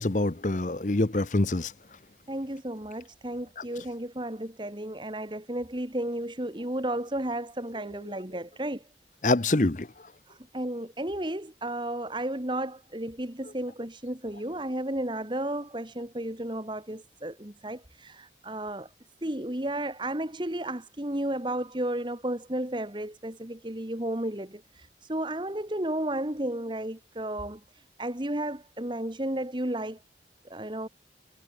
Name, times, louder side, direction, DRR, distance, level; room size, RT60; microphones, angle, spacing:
voice 1, 0.0-1.7 9.2-9.9, left 2 dB, 45° left, 0.9 m, -25 dB
voice 2, 2.3-8.8 10.3-18.9 19.2-30.0 30.4-30.9, right 1 dB, 25° right, 1.6 m, -33 dB
head